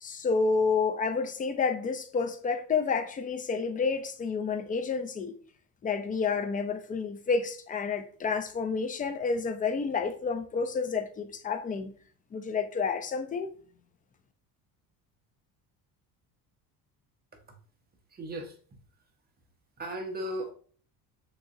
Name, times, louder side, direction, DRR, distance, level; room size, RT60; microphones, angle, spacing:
voice 1, 0.0-5.3 5.8-11.9 12.3-13.5, left 5 dB, 20° left, 0.4 m, -29 dB
voice 2, 18.1-18.6 19.8-20.5, right 1 dB, 25° right, 1.0 m, -35 dB
6.3 x 2.9 x 2.6 m
cardioid pair, 125°, 40 cm